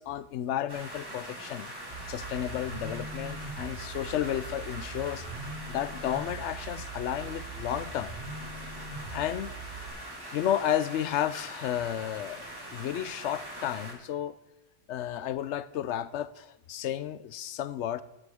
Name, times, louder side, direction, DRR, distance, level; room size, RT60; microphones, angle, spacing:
voice 1, 0.0-1.7 2.1-5.2 5.7-8.1 9.1-9.5 10.3-12.4 12.7-14.3 14.9-18.0, left 11 dB, 75° left, 16 dB, 0.9 m, -32 dB
sound 1, 0.7-13.9, right 1 dB, 20° right, 2.0 m, -42 dB
sound 2, 1.9-9.9, right 3 dB, 70° right, 2.5 m, -42 dB
12.0 x 11.0 x 3.6 m, 0.91 s
omnidirectional pair, 1.2 m